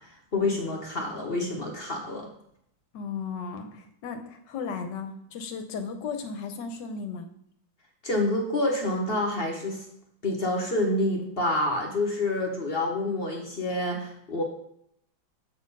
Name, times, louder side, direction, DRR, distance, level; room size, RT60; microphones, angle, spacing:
voice 1, 0.3-2.3 8.0-9.8 10.2-14.4, left 2 dB, 40° left, 1 dB, 0.9 m, -27 dB
voice 2, 2.9-7.3, left 5 dB, 65° left, 7 dB, 1.4 m, -35 dB
7.7 x 4.2 x 5.4 m, 0.74 s
omnidirectional pair, 2.2 m